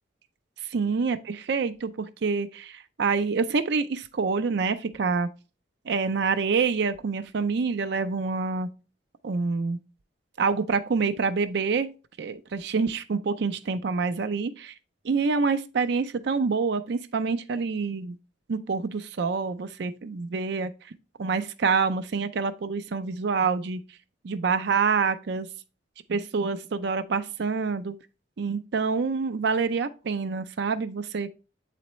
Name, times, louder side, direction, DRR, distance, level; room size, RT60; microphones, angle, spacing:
voice 1, 0.6-5.3 5.9-8.7 9.2-9.8 10.4-11.9 12.2-14.7 15.0-18.2 18.5-20.9 21.2-23.8 24.2-25.5 26.1-28.0 28.4-31.3, right 5 dB, 60° right, 0.4 m, -27 dB
7.7 x 4.2 x 3.0 m
head